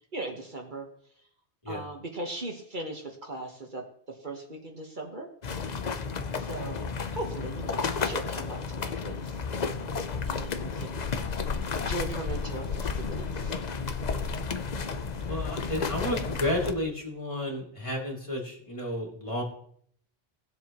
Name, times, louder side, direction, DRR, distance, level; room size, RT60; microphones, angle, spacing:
voice 1, 0.1-0.9 1.7-3.8 4.2-5.3 6.4-6.8 7.1-9.4 10.3-11.0 11.9-13.6 16.0-16.3, right 2 dB, 45° right, 1 dB, 1.5 m, -38 dB
sound 1, 5.4-16.7, left 5 dB, 45° left, 0.8 m, -32 dB
voice 2, 15.3-19.4, left 1 dB, 30° left, -2 dB, 2.7 m, -32 dB
19.0 x 7.5 x 3.0 m, 0.63 s
omnidirectional pair, 1.1 m